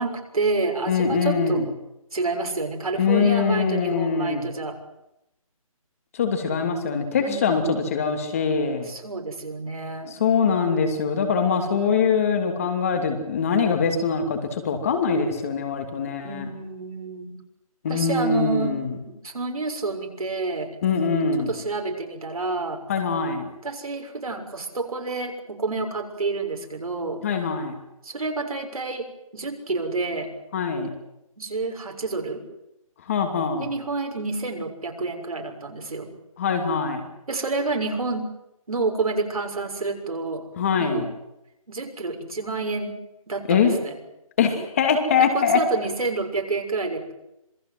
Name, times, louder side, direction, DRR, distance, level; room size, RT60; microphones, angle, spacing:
voice 1, 0.0-1.6 2.1-4.8 7.2-7.8 8.9-10.1 16.2-17.3 17.9-18.8 19.0-20.7 21.5-22.8 23.6-27.3 28.0-29.1 29.3-30.3 31.4-32.4 33.6-36.1 37.3-38.3 38.7-40.5 40.8-41.1 41.7-43.0 43.3-44.0 45.2-47.1, right 3 dB, 75° right, 3 dB, 6.4 m, -29 dB
voice 2, 0.9-1.7 3.0-4.5 6.1-8.9 10.1-16.5 17.8-19.0 20.8-21.5 22.9-23.5 27.2-27.7 30.5-30.9 33.1-33.7 36.4-37.0 40.6-41.1 43.5-43.7 44.4-45.6, left 5 dB, 25° left, 5 dB, 2.7 m, -23 dB
26.5 x 20.5 x 7.8 m, 0.89 s
hypercardioid pair, 170°, 18 cm